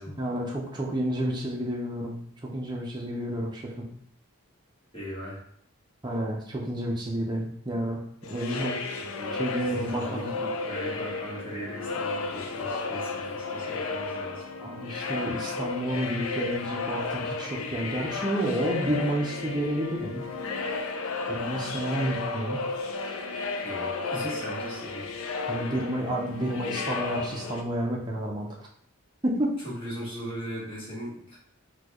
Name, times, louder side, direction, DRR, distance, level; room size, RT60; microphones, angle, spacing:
voice 1, 0.2-3.9 6.0-8.0 8.3-8.8 9.3-10.3 14.6-20.3 21.3-22.6 25.4-28.5 29.2-29.6, right 1 dB, 20° right, -2 dB, 0.6 m, -30 dB
voice 2, 4.9-5.4 8.9-14.4 23.6-25.1 29.6-31.4, equal, 25° left, -8 dB, 1.4 m, -39 dB
sound 1, 8.2-27.6, left 3 dB, 70° left, 0.4 m, -33 dB
4.3 x 2.3 x 2.9 m, 0.66 s
head